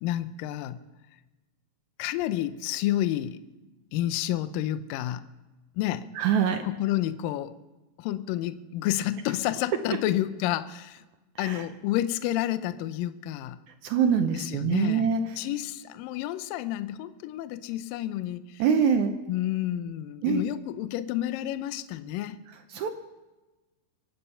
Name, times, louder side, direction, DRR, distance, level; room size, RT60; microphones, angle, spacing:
voice 1, 0.0-0.8 2.0-3.4 3.9-5.2 5.8-6.1 6.6-7.5 8.0-11.0 11.4-13.6 14.3-15.1 15.4-18.6 19.3-22.4, left 13 dB, 80° left, 13 dB, 2.1 m, -30 dB
voice 2, 6.2-6.6 11.4-11.6 13.8-15.2 18.6-19.1 20.2-20.4 22.7-22.9, right 7 dB, 80° right, 6 dB, 1.7 m, -24 dB
24.5 x 9.8 x 5.6 m, 1.1 s
omnidirectional pair, 4.4 m